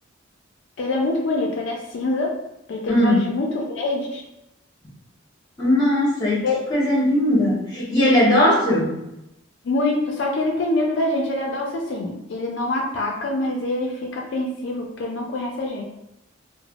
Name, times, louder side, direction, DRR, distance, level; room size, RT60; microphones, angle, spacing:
voice 1, 0.8-2.3 2.7-4.2 6.4-6.5 9.6-15.8, left 2 dB, 60° left, 0 dB, 0.4 m, -25 dB
voice 2, 2.9-3.3 5.6-9.0, left 1 dB, 20° left, -6 dB, 0.9 m, -19 dB
3.2 x 2.0 x 2.3 m, 0.89 s
head